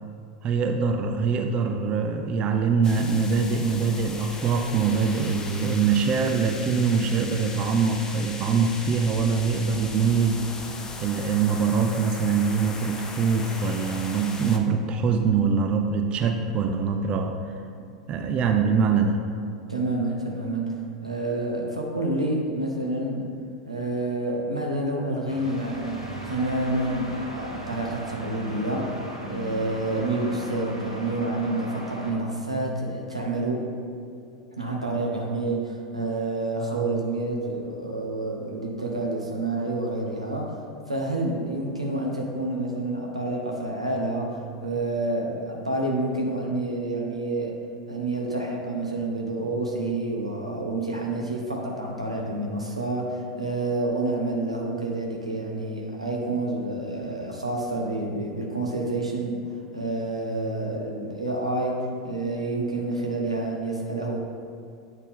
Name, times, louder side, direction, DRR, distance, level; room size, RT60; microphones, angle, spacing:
voice 1, 0.4-10.4 10.7-17.5 18.1-19.2, right 5 dB, 30° right, 5 dB, 0.4 m, -23 dB
sound 1, 2.8-14.6, left 3 dB, 20° left, 0.5 m, -38 dB
voice 2, 19.7-23.3 23.7-28.9 29.3-33.7 34.6-40.6 40.9-47.6 47.9-64.2, right 2 dB, 85° right, -1 dB, 0.9 m, -28 dB
sound 2, 25.3-32.1, right 1 dB, 90° left, 0.9 m, -37 dB
8.6 x 4.1 x 3.6 m, 2.4 s
figure-of-eight pair, 85°, 3 cm